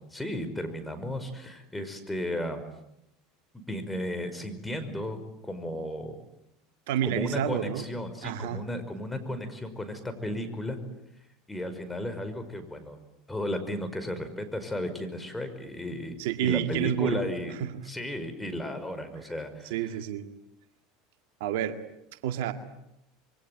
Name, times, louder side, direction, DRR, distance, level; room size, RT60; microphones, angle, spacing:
voice 1, 0.1-2.6 3.7-5.2 5.4-6.2 7.0-10.8 11.5-13.0 13.3-16.1 16.4-17.5 17.8-19.7, left 1 dB, 10° left, 8 dB, 5.5 m, -34 dB
voice 2, 6.9-7.9 8.2-8.6 16.2-17.8 19.7-20.3 21.4-21.8 22.2-22.5, right 10 dB, 75° right, 8 dB, 2.0 m, -29 dB
27.0 x 23.0 x 9.5 m, 0.84 s
hypercardioid pair, 90°, 0 cm